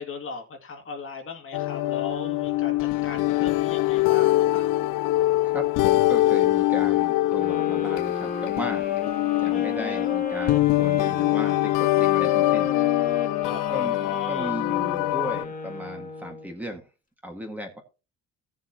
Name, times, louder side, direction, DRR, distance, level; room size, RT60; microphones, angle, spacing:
voice 1, 0.0-4.7 9.5-10.2 13.4-14.6, left 4 dB, 40° left, 2.1 m, -38 dB
sound 1, 1.5-15.4, left 17 dB, 85° left, 0.5 m, -23 dB
voice 2, 5.4-9.0 9.4-12.8 13.7-14.0 14.3-16.9 17.2-17.8, right 1 dB, 5° right, 1.8 m, -36 dB
sound 2, 7.3-16.5, left 4 dB, 25° left, 1.8 m, -35 dB
16.0 x 7.5 x 2.9 m
cardioid pair, 160°, 31 cm